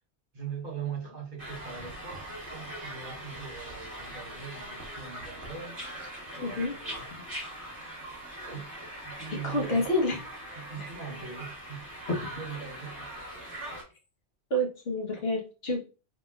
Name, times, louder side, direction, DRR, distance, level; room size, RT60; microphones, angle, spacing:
voice 1, 0.3-5.8 6.3-7.1 8.4-8.7 9.0-9.9 10.6-13.1, right 6 dB, 40° right, 1.1 m, -41 dB
sound 1, 1.4-13.8, right 1 dB, 15° right, 1.6 m, -41 dB
voice 2, 6.4-6.7 9.4-10.2 14.5-15.8, left 1 dB, 60° left, 1.2 m, -28 dB
4.1 x 2.8 x 2.3 m
omnidirectional pair, 1.2 m